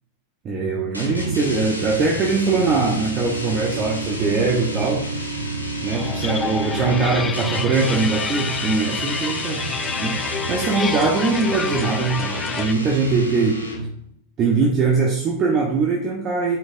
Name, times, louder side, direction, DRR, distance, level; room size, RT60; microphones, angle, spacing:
voice 1, 0.4-5.0 5.8-9.6 10.0-13.6 14.4-16.6, right 4 dB, 30° right, -1 dB, 1.2 m, -21 dB
sound 1, 0.9-14.0, right 1 dB, 90° right, 1.3 m, -29 dB
sound 2, 5.9-12.7, left 5 dB, 20° left, 0.5 m, -29 dB
11.0 x 5.4 x 2.7 m, 0.70 s
figure-of-eight pair, 90°, 0 cm